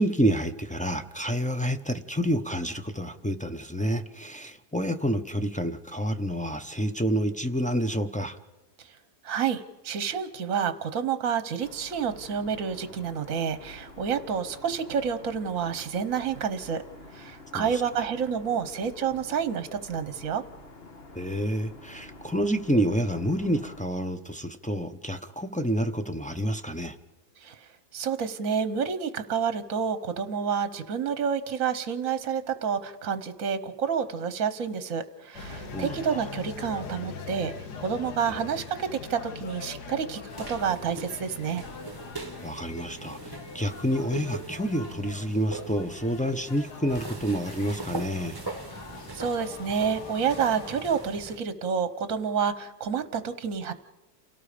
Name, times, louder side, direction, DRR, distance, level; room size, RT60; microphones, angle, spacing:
voice 1, 0.0-8.4 17.5-18.1 21.1-27.0 35.7-36.2 42.4-48.4, equal, 5° left, 5 dB, 0.6 m, -28 dB
voice 2, 9.2-16.8 17.1-20.4 27.4-27.6 27.9-37.5 37.8-40.2 40.5-41.6 49.1-53.7, right 7 dB, 60° right, 11 dB, 1.3 m, -29 dB
sound 1, 11.6-23.8, left 2 dB, 40° left, 1.5 m, -48 dB
sound 2, 35.3-50.8, left 5 dB, 85° left, 1.9 m, -42 dB
sound 3, 40.3-51.4, right 3 dB, 15° right, 1.2 m, -41 dB
29.0 x 18.0 x 5.1 m, 1.0 s
omnidirectional pair, 1.7 m